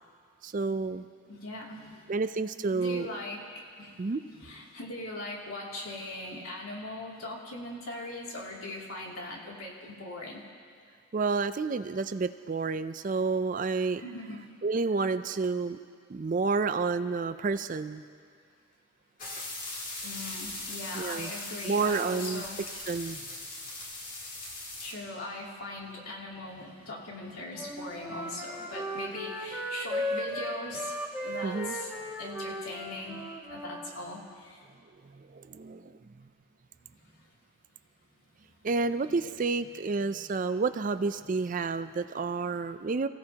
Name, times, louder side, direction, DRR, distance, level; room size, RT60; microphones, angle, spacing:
voice 1, 0.4-1.1 2.1-3.1 4.0-4.2 11.1-14.0 14.6-15.8 16.1-18.0 20.9-21.3 21.6-22.4 22.9-23.2 31.4-31.8 35.0-36.0 38.6-43.1, right 4 dB, 40° right, 11 dB, 0.4 m, -30 dB
voice 2, 1.3-2.1 2.7-10.4 14.0-14.5 20.0-22.8 24.8-31.9 32.2-33.2 33.5-34.7 38.8-38.9 39.9-40.0 40.5-40.6, left 2 dB, 85° left, -3 dB, 2.8 m, -40 dB
sound 1, 19.2-24.9, left 2 dB, 40° left, 2.5 m, -40 dB
Wind instrument woodwind instrument, 27.6-33.9, equal, 5° right, 1.3 m, -36 dB
28.0 x 16.0 x 2.9 m, 2.1 s
head